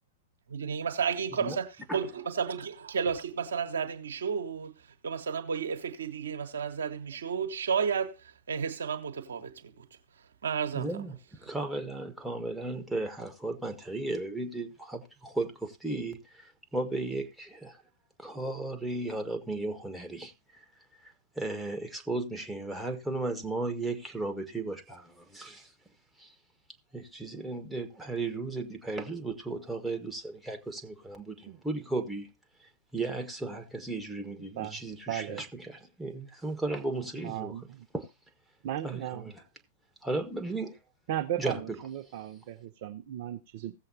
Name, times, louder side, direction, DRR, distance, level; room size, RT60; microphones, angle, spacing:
voice 1, 0.5-9.9 10.4-10.9, right 6 dB, 65° right, 1.2 m, -32 dB
voice 2, 10.7-17.8 18.2-20.6 21.0-25.7 26.2-26.3 26.9-32.3 32.6-37.6 37.9-38.1 38.8-39.4 40.0-40.8 41.4-41.8, right 2 dB, 5° right, 1.4 m, -35 dB
voice 3, 35.1-35.4 37.2-37.8 38.6-39.2 41.1-43.7, right 12 dB, 50° right, 0.7 m, -36 dB
16.5 x 7.6 x 2.8 m
figure-of-eight pair, 100°, 0 cm